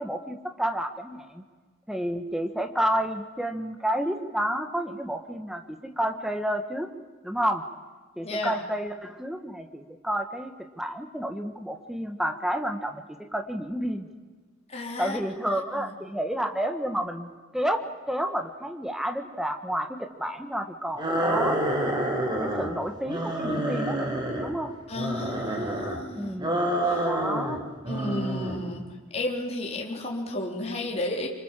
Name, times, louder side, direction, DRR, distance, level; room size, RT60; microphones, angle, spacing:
voice 1, 0.0-1.4 1.9-6.9 7.2-7.6 8.2-13.0 13.3-14.1 15.0-21.6 22.4-24.7 26.1-26.8 27.0-27.6, equal, ahead, 5 dB, 1.5 m, -30 dB
voice 2, 8.2-8.6 14.7-15.2 15.7-15.9 24.9-26.4 26.8-27.1 27.9-28.9 29.1-31.3, left 2 dB, 30° left, -1 dB, 3.8 m, -32 dB
sound 1, 21.0-22.7 23.1-24.5 24.9-26.0 26.4-27.6 27.8-28.6, right 1 dB, 20° right, 3.6 m, -28 dB
25.5 x 25.5 x 7.5 m, 1.4 s
head